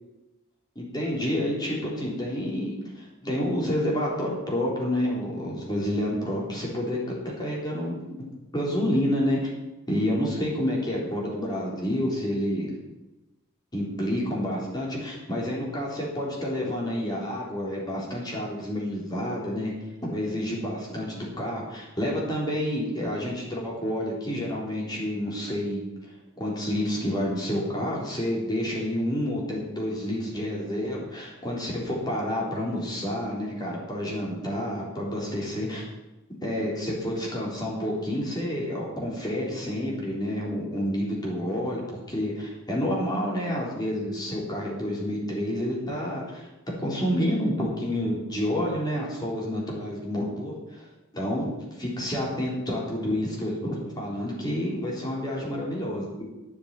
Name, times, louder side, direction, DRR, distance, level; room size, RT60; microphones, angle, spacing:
voice 1, 0.8-7.0 7.2-8.3 8.5-9.4 9.9-12.7 13.7-19.7 20.0-25.8 26.4-35.9 36.4-46.5 46.8-50.9 51.1-51.5 51.8-56.2, equal, 20° left, -4 dB, 3.7 m, -29 dB
9.8 x 7.2 x 8.9 m, 1.0 s
head